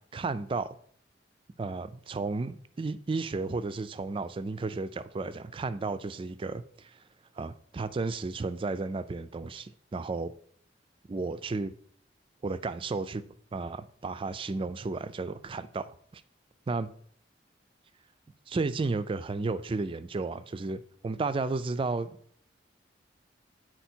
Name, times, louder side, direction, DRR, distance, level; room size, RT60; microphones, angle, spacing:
voice 1, 0.1-0.8 1.6-7.0 7.4-10.3 11.1-11.7 12.4-13.2 13.5-16.2 16.7-16.9 18.5-22.1, right 3 dB, 30° right, 0.3 m, -33 dB
9.2 x 4.5 x 4.4 m
head